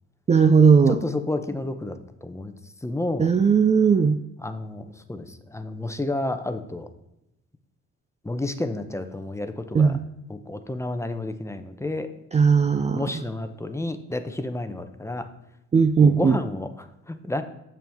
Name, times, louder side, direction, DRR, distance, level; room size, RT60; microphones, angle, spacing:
voice 1, 0.3-1.0 3.2-4.2 9.7-10.0 12.3-13.1 15.7-16.4, right 5 dB, 25° right, 8 dB, 0.4 m, -17 dB
voice 2, 0.9-2.6 2.8-3.3 4.4-6.9 8.2-10.0 10.3-12.1 12.9-15.3 16.0-17.4, left 2 dB, 10° left, 9 dB, 0.7 m, -30 dB
8.9 x 7.2 x 3.5 m, 0.88 s
cardioid pair, 90°, 30 cm